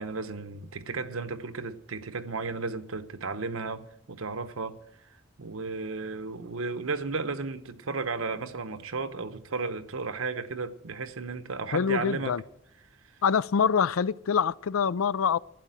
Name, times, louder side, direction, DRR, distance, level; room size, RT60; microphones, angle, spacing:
voice 1, 0.0-4.8 5.4-12.4, right 4 dB, 80° right, 1.0 m, -34 dB
voice 2, 11.7-12.4 13.2-15.4, left 6 dB, 85° left, 0.4 m, -25 dB
12.0 x 9.3 x 9.0 m
head